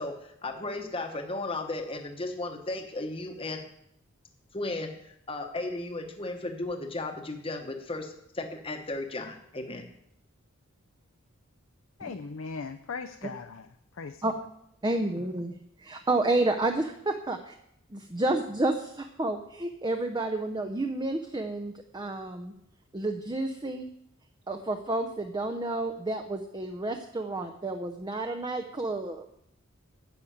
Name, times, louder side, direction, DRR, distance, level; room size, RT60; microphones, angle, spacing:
voice 1, 0.0-3.6 4.5-9.9, left 2 dB, 25° left, 3 dB, 1.0 m, -35 dB
voice 2, 12.0-13.7 14.0-14.2, left 4 dB, 70° left, 8 dB, 0.6 m, -38 dB
voice 3, 14.8-15.5 15.8-17.5 17.9-22.5 22.9-23.8 24.5-29.3, right 2 dB, 20° right, 4 dB, 0.6 m, -30 dB
10.0 x 6.5 x 8.5 m, 0.75 s
head